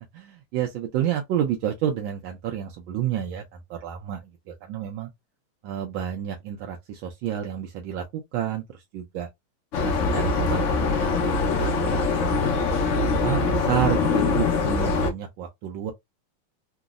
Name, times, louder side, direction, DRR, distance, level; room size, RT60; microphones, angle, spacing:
voice 1, 0.1-3.4 3.7-4.2 4.5-5.1 5.6-8.6 8.9-9.3 9.8-11.3 11.5-12.7 13.2-15.9, right 10 dB, 80° right, 1.4 m, -30 dB
sound 1, 9.7-15.1, left 4 dB, 85° left, 0.6 m, -23 dB
3.7 x 2.0 x 2.4 m
omnidirectional pair, 2.2 m